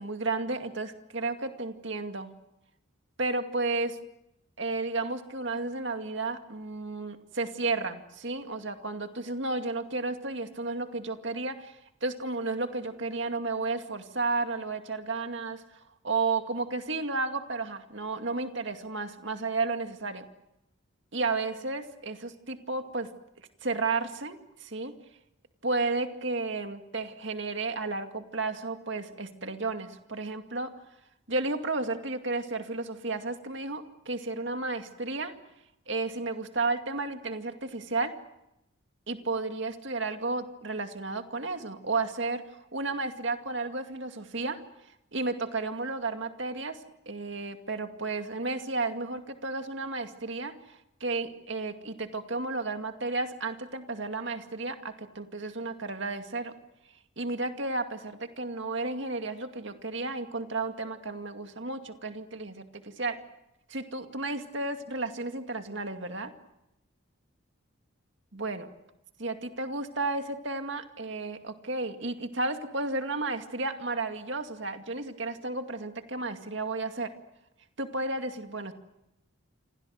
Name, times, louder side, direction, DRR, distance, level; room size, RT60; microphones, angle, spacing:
voice 1, 0.0-2.3 3.2-4.0 4.6-15.6 16.0-20.2 21.1-23.1 23.6-24.9 25.6-30.7 31.3-35.3 35.9-38.1 39.1-42.4 42.7-44.6 45.1-46.8 47.1-56.5 57.2-63.2 63.7-66.3 68.3-68.7 69.2-77.1 77.8-78.7, right 3 dB, 55° right, 6 dB, 2.3 m, -32 dB
29.5 x 26.0 x 6.5 m, 0.86 s
head